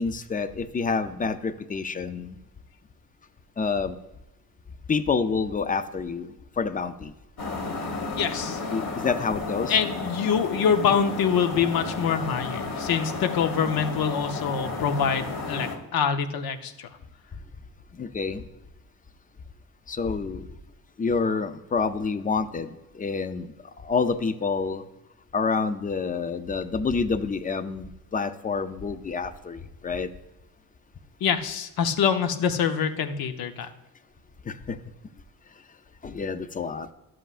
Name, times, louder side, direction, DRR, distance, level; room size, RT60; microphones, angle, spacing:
voice 1, 0.0-2.4 3.6-4.0 4.9-7.1 8.7-9.7 17.9-18.4 19.9-20.5 21.0-24.8 25.3-30.1 34.5-34.8 36.0-36.9, left 5 dB, 25° left, 11 dB, 0.4 m, -28 dB
sound 1, 7.4-15.8, left 3 dB, 45° left, 1.5 m, -33 dB
voice 2, 8.1-8.6 9.7-16.9 31.2-33.7, left 7 dB, 65° left, 8 dB, 0.8 m, -25 dB
11.0 x 7.7 x 2.4 m, 0.99 s
cardioid pair, 120°, 39 cm